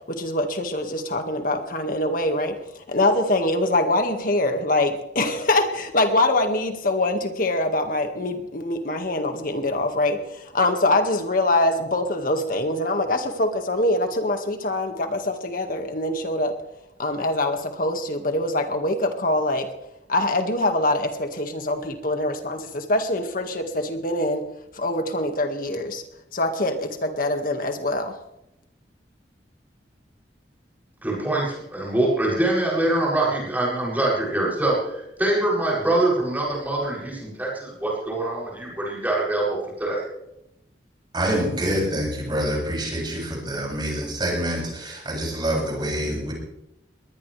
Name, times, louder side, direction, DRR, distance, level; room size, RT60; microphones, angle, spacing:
voice 1, 0.1-16.5 17.0-19.7 20.1-24.5 24.7-26.0 26.3-28.2, left 2 dB, 50° left, 6 dB, 2.0 m, -24 dB
voice 2, 31.0-40.0, right 2 dB, 10° right, -5 dB, 7.6 m, -24 dB
voice 3, 41.1-46.3, equal, 25° right, -3 dB, 7.4 m, -26 dB
21.5 x 19.5 x 3.4 m, 0.85 s
head